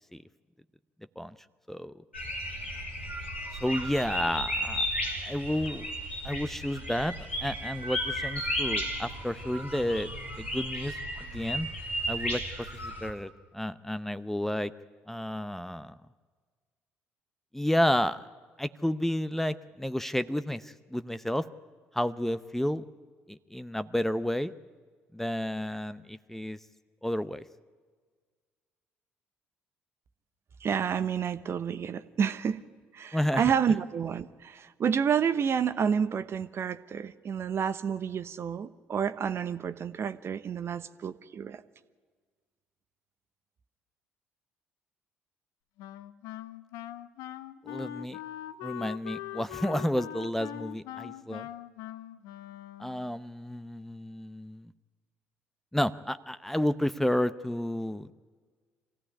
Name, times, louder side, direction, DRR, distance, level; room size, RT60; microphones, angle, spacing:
sound 1, 2.1-13.1, equal, 90° left, 2.8 m, -34 dB
voice 1, 3.6-4.9 5.2-5.9 6.2-7.1 7.4-10.1 10.4-11.7 12.1-14.7 15.1-16.0 17.5-18.3 18.6-21.4 21.9-22.8 23.3-24.5 25.1-26.6 27.0-27.4 33.1-33.4 47.7-48.2 48.6-51.5 52.8-54.7 55.7-58.1, left 1 dB, 5° left, 14 dB, 0.8 m, -31 dB
voice 2, 30.6-32.6 32.9-41.6, right 7 dB, 45° right, 13 dB, 1.0 m, -29 dB
Wind instrument woodwind instrument, 45.8-53.2, left 13 dB, 65° left, 0.8 m, -42 dB
25.5 x 16.0 x 9.9 m, 1.6 s
figure-of-eight pair, 50°, 6 cm